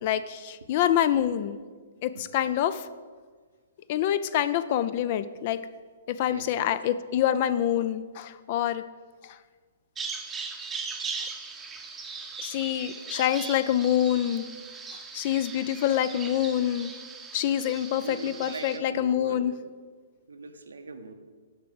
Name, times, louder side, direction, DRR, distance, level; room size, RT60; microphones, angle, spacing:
voice 1, 0.0-1.6 2.0-2.9 3.9-5.6 6.1-8.8 9.2-9.4 12.4-14.4 15.1-16.9 17.3-19.5, left 11 dB, 45° left, 14 dB, 0.3 m, -26 dB
voice 2, 6.3-6.7 12.5-13.1 18.0-19.5 20.3-21.1, right 4 dB, 90° right, 7 dB, 0.8 m, -41 dB
Bird vocalization bird call bird song, 10.0-18.8, right 5 dB, 15° right, 0.7 m, -39 dB
7.4 x 4.6 x 6.9 m, 1.5 s
hypercardioid pair, 135°, 0 cm